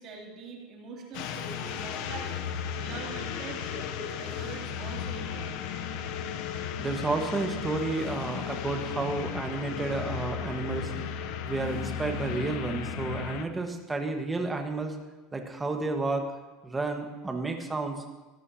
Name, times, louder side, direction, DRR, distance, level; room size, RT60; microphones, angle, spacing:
voice 1, 0.0-2.4 2.8-5.6, right 4 dB, 45° right, -1 dB, 3.1 m, -43 dB
sound 1, 1.1-13.5, left 8 dB, 65° left, 0.9 m, -35 dB
voice 2, 6.8-10.9 11.4-15.0 15.3-16.2 16.6-18.0, right 3 dB, 10° right, 4 dB, 1.5 m, -31 dB
17.0 x 13.5 x 2.9 m, 1.2 s
supercardioid pair, 140°, 0 cm